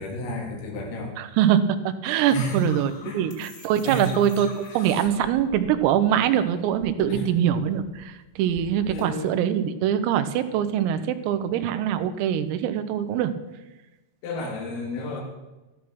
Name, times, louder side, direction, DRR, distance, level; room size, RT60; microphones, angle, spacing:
voice 1, 0.0-1.1 2.3-2.7 3.0-3.3 3.9-4.2 4.6-5.0 7.1-7.3 8.8-9.4 14.2-15.2, equal, 80° left, 0 dB, 5.3 m, -31 dB
voice 2, 1.2-1.6 2.0-13.3, right 10 dB, 90° right, 10 dB, 3.7 m, -23 dB
sound 1, 2.2-6.3 6.6-9.0, left 2 dB, 20° left, 1.9 m, -46 dB
13.5 x 12.5 x 6.1 m, 1.1 s
omnidirectional pair, 5.9 m